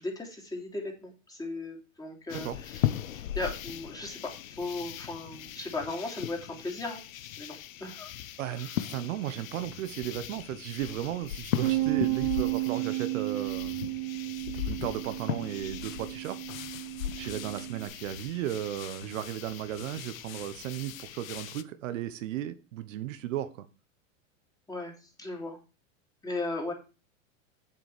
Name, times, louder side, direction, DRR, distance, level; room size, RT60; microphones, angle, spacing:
voice 1, 0.0-2.8 3.1-4.2 4.5-7.0 7.4-8.1 24.7-24.9 25.2-25.6 26.2-26.7, left 2 dB, 10° left, 3.0 m, -36 dB
sound 1, 2.3-21.6, left 12 dB, 85° left, 0.9 m, -38 dB
voice 2, 8.4-13.8 14.5-16.4 17.2-23.7, right 12 dB, 70° right, 1.1 m, -35 dB
Bass guitar, 11.6-17.9, right 21 dB, 90° right, 2.6 m, -32 dB
7.8 x 7.8 x 4.9 m
hypercardioid pair, 125°, 40 cm